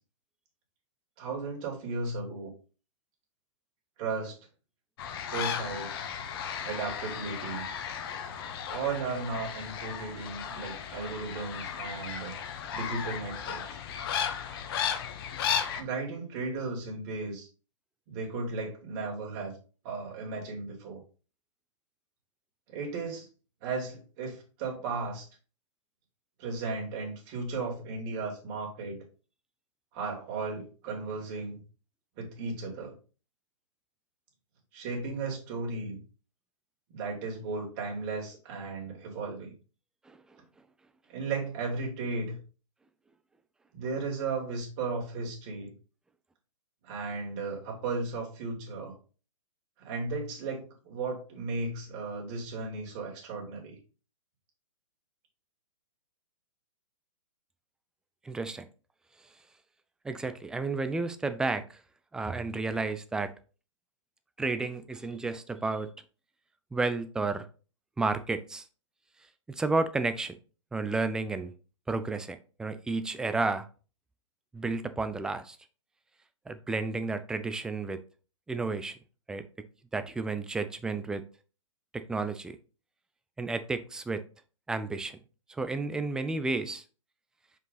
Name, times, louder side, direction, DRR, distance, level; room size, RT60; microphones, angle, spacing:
voice 1, 1.2-2.5 4.0-4.4 5.2-5.9 6.6-7.7 8.7-12.4 12.7-13.8 15.8-17.5 18.1-19.5 19.8-21.0 22.7-23.3 23.6-25.2 26.4-29.0 29.9-31.6 32.2-32.9 34.7-36.0 36.9-39.5 41.1-42.4 43.7-45.7 46.8-48.9 49.8-53.8, right 3 dB, 35° right, 2.8 m, -35 dB
sound 1, 5.0-15.8, left 8 dB, 45° left, 1.0 m, -35 dB
voice 2, 58.2-58.7 60.0-61.8 62.1-63.3 64.4-65.9 66.7-67.4 68.0-68.7 69.5-70.3 70.7-71.5 71.9-73.7 74.5-75.6 76.5-78.0 78.5-79.0 79.3-79.4 79.9-81.2 81.9-82.6 83.4-84.2 84.7-85.2 85.5-86.8, right 3 dB, 5° right, 0.3 m, -31 dB
5.4 x 4.9 x 3.9 m
hypercardioid pair, 135°, 17 cm